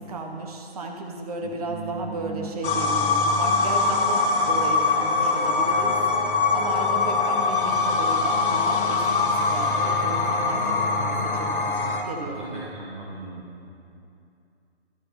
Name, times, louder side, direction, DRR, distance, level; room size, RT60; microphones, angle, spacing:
voice 1, 0.0-12.6, right 3 dB, 35° right, 2 dB, 1.2 m, -34 dB
voice 2, 1.4-2.5 12.2-13.5, right 3 dB, 50° right, -7 dB, 2.1 m, -38 dB
sound 1, 2.6-12.0, left 4 dB, 50° left, 1.3 m, -23 dB
12.0 x 9.8 x 4.3 m, 2.6 s
figure-of-eight pair, 150°, 33 cm